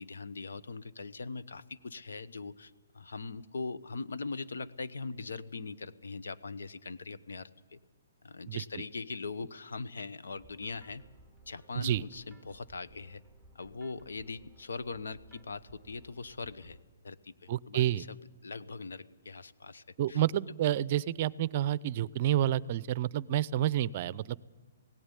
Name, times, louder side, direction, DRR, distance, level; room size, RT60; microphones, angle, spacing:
voice 1, 0.0-7.8 8.2-11.0 11.5-13.2 13.5-16.8 17.0-18.2 18.4-20.2, left 4 dB, 90° left, 13 dB, 1.0 m, -41 dB
voice 2, 8.5-8.8 11.8-12.0 17.5-18.0 20.0-24.4, right 12 dB, 45° right, 20 dB, 0.6 m, -29 dB
sound 1, 10.4-16.8, right 2 dB, 5° left, 2.1 m, -59 dB
17.0 x 17.0 x 10.0 m, 1.3 s
hypercardioid pair, 150°, 0 cm